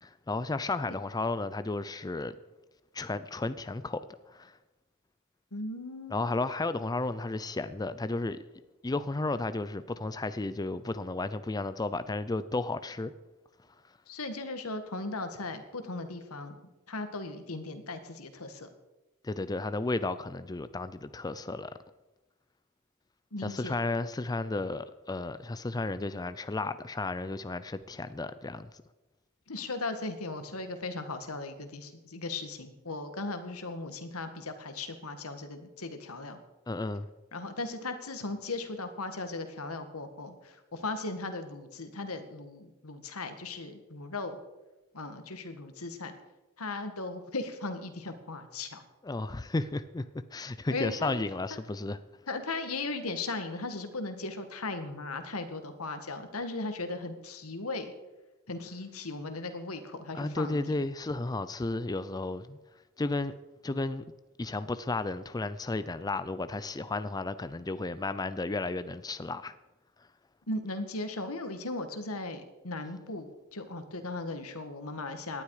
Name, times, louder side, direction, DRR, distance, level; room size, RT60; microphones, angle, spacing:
voice 1, 0.0-2.3 2.9-4.0 4.3-4.6 6.1-8.4 8.8-13.1 19.2-21.7 23.4-28.7 36.7-37.1 49.0-52.0 60.1-62.6 63.0-63.3 63.6-64.0 64.4-69.5, left 2 dB, 20° left, 13 dB, 0.4 m, -33 dB
voice 2, 5.5-6.2 14.1-16.6 16.9-18.7 23.3-23.8 29.5-36.4 37.3-44.4 44.9-46.1 46.6-48.8 50.7-51.2 51.5-51.6 52.3-57.9 58.5-60.6 70.5-75.4, left 3 dB, 80° left, 8 dB, 1.8 m, -37 dB
18.0 x 11.5 x 4.9 m, 1.1 s
head